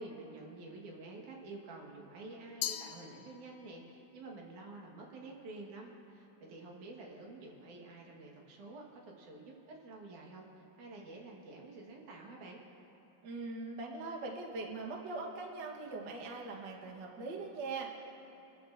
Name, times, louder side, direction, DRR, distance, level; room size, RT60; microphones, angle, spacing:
voice 1, 0.0-12.6, right 2 dB, 70° right, -1 dB, 3.0 m, -49 dB
Glass, 2.6-3.8, left 11 dB, 80° left, 1.6 m, -40 dB
voice 2, 13.2-17.9, right 3 dB, 50° right, -1 dB, 1.5 m, -41 dB
29.0 x 13.5 x 2.6 m, 2.9 s
omnidirectional pair, 3.6 m